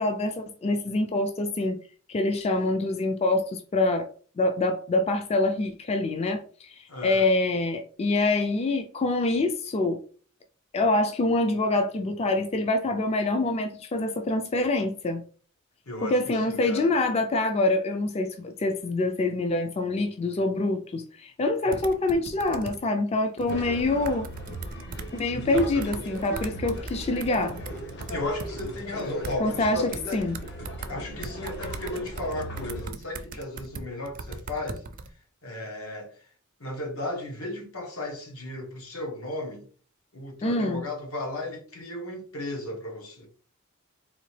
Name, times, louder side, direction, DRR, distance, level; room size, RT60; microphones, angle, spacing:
voice 1, 0.0-1.8 2.1-4.1 4.4-10.0 10.7-15.2 16.0-24.3 25.1-27.6 29.4-30.3 40.4-40.8, left 2 dB, 30° left, 0.3 m, -25 dB
voice 2, 6.9-7.3 15.9-16.9 21.6-21.8 25.3-25.9 26.7-26.9 28.1-30.2 30.9-34.8 35.4-36.1 36.6-39.6 40.1-43.3, left 1 dB, 85° left, 1.2 m, -35 dB
sound 1, 21.7-22.8 23.4-23.5 24.1-25.2 25.6-29.3 29.9-30.9 31.2-35.1, right 4 dB, 40° right, 0.4 m, -39 dB
sound 2, 23.5-32.9, equal, 55° left, 0.9 m, -38 dB
3.8 x 2.8 x 3.2 m
head